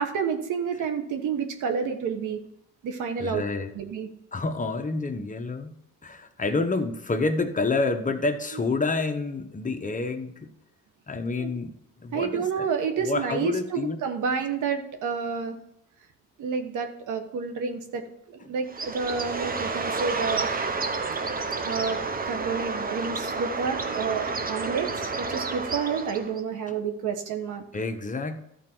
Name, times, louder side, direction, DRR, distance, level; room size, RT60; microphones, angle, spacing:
voice 1, 0.0-2.4 2.8-3.4 3.7-4.1 11.4-11.5 12.1-15.6 16.4-20.5 21.6-22.0 22.2-27.6, right 6 dB, 80° right, 6 dB, 1.4 m, -29 dB
voice 2, 3.2-3.7 4.3-10.5 11.1-11.7 12.0-12.7 13.0-14.0 18.4-18.5 27.7-28.4, left 3 dB, 25° left, 6 dB, 1.0 m, -28 dB
Bird, 18.7-26.4, right 4 dB, 30° right, 0.9 m, -30 dB
13.0 x 4.4 x 6.1 m, 0.76 s
cardioid pair, 90°, 30 cm